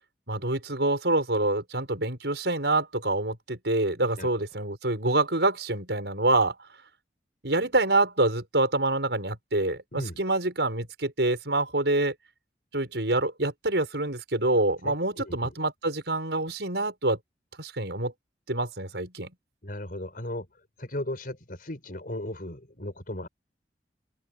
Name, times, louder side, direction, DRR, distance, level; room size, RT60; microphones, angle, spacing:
voice 1, 0.3-6.5 7.4-12.1 12.7-17.2 17.6-18.1 18.5-19.3, right 2 dB, 75° right, 6.4 m, -26 dB
voice 2, 14.8-15.5 19.6-20.5 20.8-23.3, left 1 dB, 55° left, 5.4 m, -36 dB
open air
head